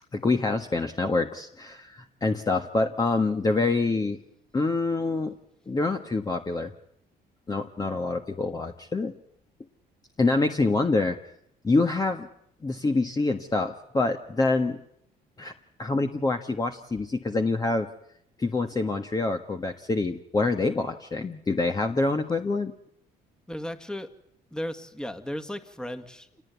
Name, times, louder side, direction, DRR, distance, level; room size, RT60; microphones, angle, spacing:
voice 1, 0.1-4.2 4.5-5.3 5.7-6.7 7.5-9.1 10.2-11.2 11.6-12.3 12.6-14.8 15.4-15.5 15.8-17.9 18.4-22.7, left 3 dB, 20° left, 5 dB, 1.5 m, -26 dB
voice 2, 23.5-24.1 24.5-26.4, equal, 5° left, 7 dB, 2.1 m, -35 dB
28.0 x 18.5 x 9.4 m, 0.73 s
cardioid pair, 110°, 17 cm